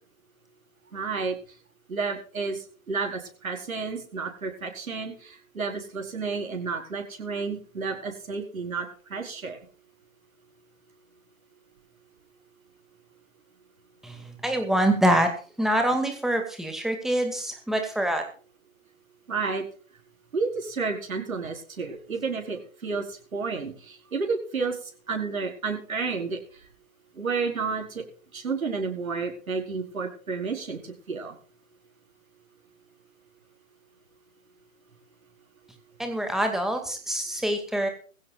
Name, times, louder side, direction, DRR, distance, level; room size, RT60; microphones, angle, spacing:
voice 1, 0.9-1.4 1.9-9.6 19.3-19.6 20.3-24.8 25.1-26.4 27.2-28.0 28.3-31.4, right 4 dB, 80° right, 3 dB, 4.7 m, -31 dB
voice 2, 14.0-15.3 15.6-18.2 36.0-37.9, right 1 dB, ahead, 5 dB, 2.2 m, -25 dB
21.0 x 16.0 x 2.4 m, 0.39 s
hypercardioid pair, 145°, 41 cm